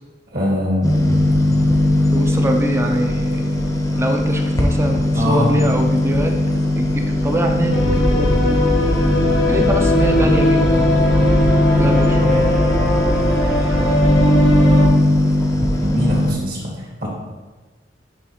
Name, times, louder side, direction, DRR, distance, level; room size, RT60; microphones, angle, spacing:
voice 1, 0.3-1.3 5.1-5.6 15.7-17.1, left 1 dB, 55° right, -3 dB, 1.7 m, -22 dB
sound 1, 0.8-16.3, left 1 dB, 20° left, 0.7 m, -19 dB
voice 2, 2.1-3.6 3.9-6.4 6.8-8.4 9.5-10.9 11.8-12.5, right 1 dB, 15° right, 3 dB, 0.5 m, -23 dB
sound 2, 7.7-14.9, left 1 dB, 85° left, 1.4 m, -18 dB
9.4 x 3.2 x 3.1 m, 1.2 s
head